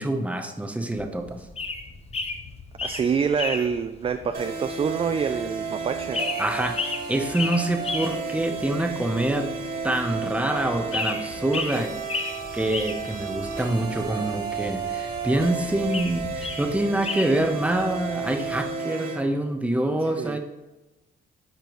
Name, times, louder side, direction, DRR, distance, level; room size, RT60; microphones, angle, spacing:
voice 1, 0.0-1.5 6.4-6.8 7.1-9.5 9.8-12.3 12.5-20.4, right 1 dB, 5° right, 5 dB, 0.8 m, -26 dB
sound 1, 0.9-18.7, left 3 dB, 30° left, 0.8 m, -35 dB
voice 2, 2.8-6.2 20.0-20.4, right 6 dB, 30° right, 9 dB, 0.3 m, -26 dB
sound 2, 4.3-19.2, right 5 dB, 50° right, 2.1 m, -33 dB
10.0 x 4.4 x 3.1 m, 1.1 s
cardioid pair, 90°, 20 cm